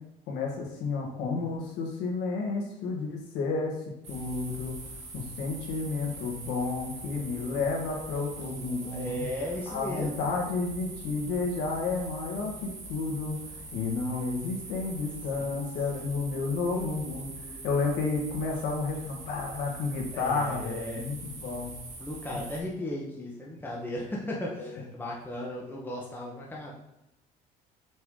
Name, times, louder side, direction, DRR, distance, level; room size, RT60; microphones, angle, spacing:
voice 1, 0.3-3.7 4.1-4.8 5.1-9.3 9.7-13.4 13.7-17.3 17.6-21.7 22.3-22.4 24.6-24.7, left 4 dB, 90° left, 0 dB, 1.7 m, -31 dB
sound 1, 4.0-22.6, right 3 dB, 40° right, 1.6 m, -43 dB
voice 2, 7.2-10.4 15.4-17.6 20.1-21.0 22.0-26.7, left 1 dB, 10° left, -3 dB, 1.2 m, -38 dB
6.1 x 4.8 x 3.8 m, 0.85 s
cardioid pair, 110°, 17 cm